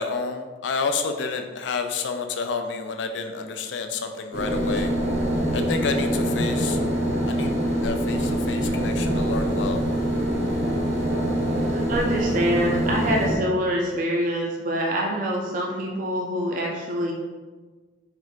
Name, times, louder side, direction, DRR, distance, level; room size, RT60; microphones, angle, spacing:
voice 1, 0.0-4.9 5.5-6.8 7.3-7.5 7.8-9.8, left 4 dB, 85° left, 6 dB, 0.4 m, -29 dB
sound 1, 4.3-13.4, equal, 70° right, 0.8 m, -24 dB
voice 2, 11.6-17.1, equal, 45° right, -1 dB, 0.5 m, -25 dB
3.5 x 2.5 x 4.3 m, 1.4 s
head